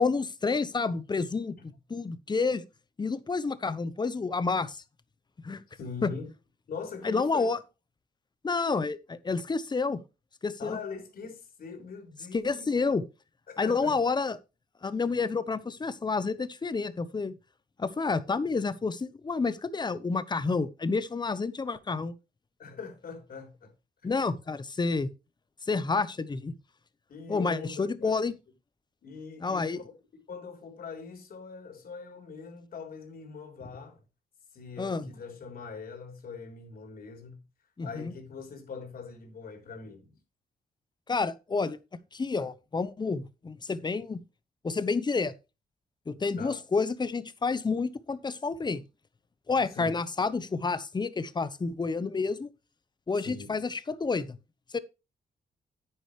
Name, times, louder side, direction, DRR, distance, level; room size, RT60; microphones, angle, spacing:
voice 1, 0.0-1.6 1.9-2.6 3.0-4.8 5.4-5.6 6.0-6.1 7.0-7.6 8.4-10.0 10.4-10.8 12.3-13.0 13.6-14.4 14.8-17.3 17.8-22.1 24.0-25.1 25.7-26.5 27.3-28.3 29.4-29.8 34.8-35.1 37.8-38.1 41.1-41.8 42.1-44.2 44.6-45.3 46.1-48.8 49.5-52.5 53.1-54.4 54.7-54.8, left 4 dB, 25° left, 1.0 m, -29 dB
voice 2, 5.5-6.3 6.7-7.5 10.6-12.7 13.5-14.0 22.6-23.7 24.0-24.3 27.1-28.2 29.0-34.0 34.5-37.4 37.8-40.2 46.4-46.6 49.5-50.0 53.2-53.5, left 5 dB, 60° left, 3.8 m, -42 dB
10.0 x 9.3 x 3.2 m
cardioid pair, 110°, 17 cm